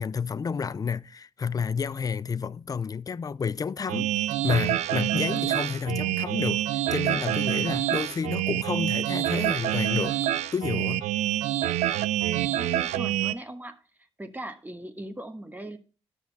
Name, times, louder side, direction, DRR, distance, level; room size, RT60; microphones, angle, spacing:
voice 1, 0.0-4.1 4.4-10.2 10.5-11.0, left 6 dB, 30° left, 0.4 m, -30 dB
sound 1, 3.9-13.3, right 13 dB, 85° right, 0.4 m, -27 dB
voice 2, 12.5-13.8 14.2-15.8, right 1 dB, 15° right, 1.3 m, -39 dB
11.0 x 6.6 x 4.1 m
supercardioid pair, 50°, 12 cm